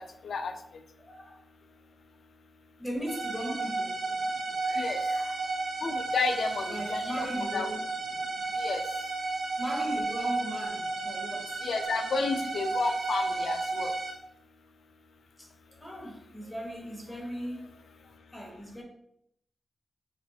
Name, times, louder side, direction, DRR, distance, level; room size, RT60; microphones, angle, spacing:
voice 1, 1.0-1.4 2.8-4.0 4.6-5.4 6.7-7.8 9.6-11.6 15.4-17.7 18.0-18.8, equal, 10° left, -2 dB, 1.1 m, -38 dB
sound 1, 3.1-14.2, right 3 dB, 70° right, 0.6 m, -32 dB
voice 2, 5.8-7.3 7.5-7.7 8.6-8.8 11.6-13.9, left 4 dB, 85° left, 7 dB, 0.3 m, -31 dB
4.2 x 2.9 x 2.3 m, 0.74 s
wide cardioid pair, 110°, 0 cm